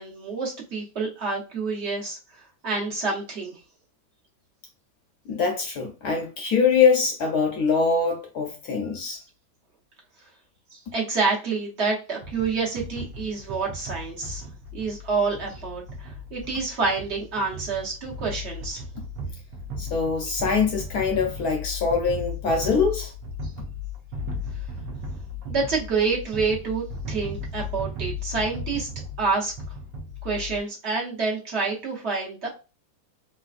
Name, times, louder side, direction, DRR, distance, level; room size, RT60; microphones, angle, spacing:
voice 1, 0.0-2.2 2.6-3.6 10.7-14.4 14.7-18.8 25.5-28.9 29.2-29.5 30.2-32.5, right 4 dB, 50° right, 0.9 m, -28 dB
voice 2, 5.3-9.2 19.8-23.1, left 5 dB, 70° left, 0.9 m, -23 dB
sound 1, 12.2-30.6, left 2 dB, 70° right, 1.2 m, -36 dB
3.2 x 2.8 x 2.4 m
omnidirectional pair, 2.1 m